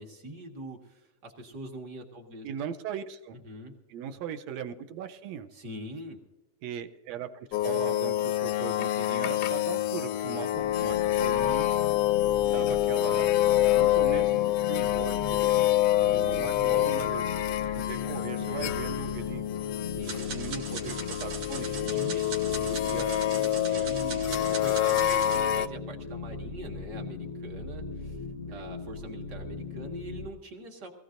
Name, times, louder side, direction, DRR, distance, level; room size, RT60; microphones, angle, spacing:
voice 1, 0.0-2.5 3.3-3.7 5.5-6.2 18.4-18.8 19.8-20.3 21.8-22.6 23.7-30.9, right 1 dB, 40° right, 2 dB, 1.8 m, -43 dB
voice 2, 2.4-3.4 3.9-5.5 6.6-11.9 12.5-17.2 17.8-19.4 20.3-22.0 22.6-23.3 23.7-23.9 24.9-25.0 28.5-28.7, right 8 dB, 75° right, 9 dB, 1.7 m, -39 dB
sound 1, 7.5-25.7, left 13 dB, 80° left, 1.6 m, -27 dB
sound 2, 10.5-30.3, left 4 dB, 50° left, 1.0 m, -39 dB
sound 3, 20.0-25.4, right 5 dB, 90° right, 3.6 m, -40 dB
22.5 x 15.5 x 2.6 m, 1.1 s
omnidirectional pair, 3.6 m